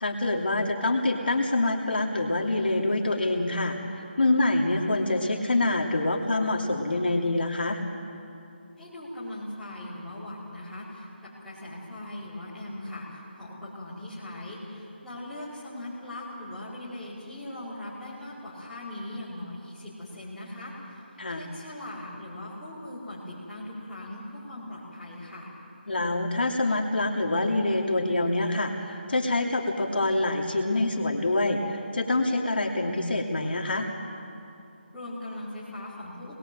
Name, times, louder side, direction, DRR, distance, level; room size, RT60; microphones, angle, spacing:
voice 1, 0.0-3.8 4.2-7.8 21.2-21.4 25.9-33.9, left 2 dB, 60° left, 1 dB, 2.7 m, -26 dB
voice 2, 8.8-21.0 21.3-25.5 34.9-36.4, left 1 dB, ahead, -15 dB, 4.8 m, -40 dB
27.0 x 21.0 x 7.7 m, 2.6 s
figure-of-eight pair, 175°, 6 cm